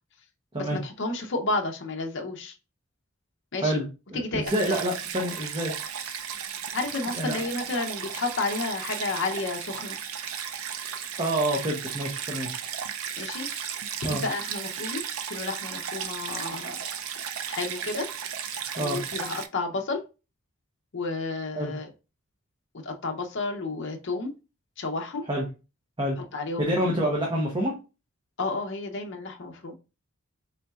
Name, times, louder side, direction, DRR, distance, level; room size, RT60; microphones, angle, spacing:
voice 1, 0.5-2.6 3.5-3.8 4.1-4.8 6.7-10.0 13.2-16.8 17.5-18.1 18.8-20.0 20.9-21.9 22.8-24.3 24.8-25.2 26.2-27.1 28.4-29.7, left 3 dB, 55° left, 2 dB, 0.6 m, -31 dB
voice 2, 3.6-5.7 7.1-7.5 11.2-12.5 14.0-14.2 18.8-19.0 21.5-21.7 25.3-25.4 26.0-26.2 26.6-27.7, right 1 dB, 20° right, -1 dB, 0.8 m, -27 dB
Stream, 4.5-19.5, right 8 dB, 75° right, 0.4 m, -35 dB
4.2 x 3.9 x 2.3 m, 0.30 s
head